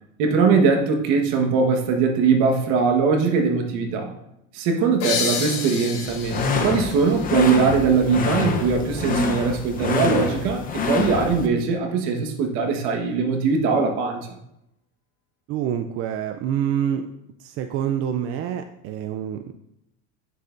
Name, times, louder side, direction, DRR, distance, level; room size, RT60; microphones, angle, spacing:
voice 1, 0.2-4.1 4.5-14.3, right 5 dB, 60° right, 3 dB, 1.5 m, -21 dB
sound 1, 5.0-8.4, left 5 dB, 60° left, 3.2 m, -30 dB
sound 2, 6.1-11.5, left 3 dB, 25° left, 0.8 m, -26 dB
voice 2, 15.5-19.5, right 9 dB, 45° right, 7 dB, 0.5 m, -27 dB
9.4 x 6.7 x 2.6 m, 0.82 s
supercardioid pair, 125°, 33 cm